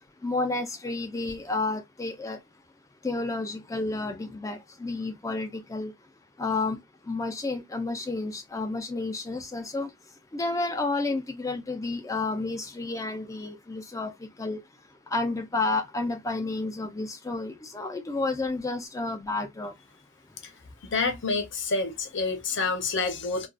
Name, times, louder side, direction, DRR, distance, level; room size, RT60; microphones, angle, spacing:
voice 1, 0.2-2.4 3.0-5.9 6.4-6.8 7.1-9.9 10.3-14.1 14.4-14.6 15.1-19.7, left 3 dB, 15° left, 0.3 m, -31 dB
voice 2, 20.8-23.5, left 4 dB, 55° left, 0.7 m, -28 dB
2.3 x 2.3 x 2.4 m
head